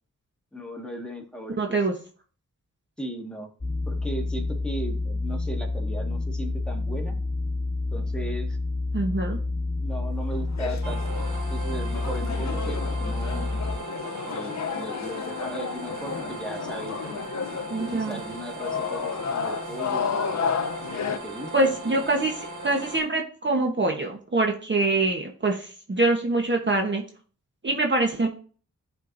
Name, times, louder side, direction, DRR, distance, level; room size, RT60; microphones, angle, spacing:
voice 1, 0.5-1.8 3.0-3.5 3.9-7.1 7.9-8.6 9.8-11.2 11.5-13.5 14.3-17.2 17.8-20.1 21.2-22.0, right 1 dB, 5° left, 1 dB, 1.7 m, -37 dB
voice 2, 1.6-1.9 8.9-9.4 17.7-18.2 21.5-27.0 27.6-28.3, right 2 dB, 35° right, 2 dB, 1.1 m, -24 dB
sound 1, 3.6-13.8, left 2 dB, 30° left, 2.8 m, -29 dB
sound 2, 10.3-21.2, left 6 dB, 60° left, 0.7 m, -32 dB
sound 3, 10.8-23.0, right 2 dB, 70° right, 1.8 m, -38 dB
11.5 x 4.5 x 2.6 m, 0.42 s
cardioid pair, 70°, 31 cm